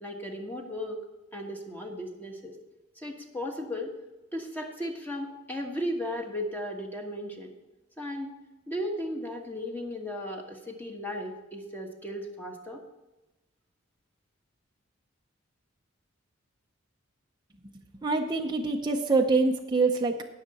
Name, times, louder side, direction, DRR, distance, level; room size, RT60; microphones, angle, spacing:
voice 1, 0.0-1.0 1.3-2.6 3.0-3.9 4.3-7.5 8.0-8.3 8.7-12.8, left 1 dB, 10° left, 1 dB, 1.3 m, -35 dB
voice 2, 18.0-20.3, right 3 dB, 20° right, 1 dB, 0.6 m, -25 dB
17.5 x 6.6 x 4.1 m, 1.0 s
head